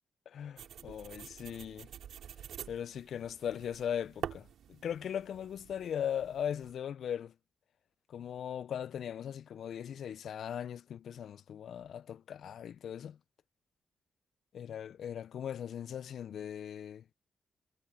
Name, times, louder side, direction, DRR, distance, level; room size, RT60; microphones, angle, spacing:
voice 1, 0.3-1.9 2.7-7.3 8.1-13.2 14.5-17.0, left 9 dB, 70° left, 0.3 m, -39 dB
sound 1, 0.6-6.7, right 9 dB, 85° right, 2.8 m, -47 dB
wide cardioid pair, 145°, 0 cm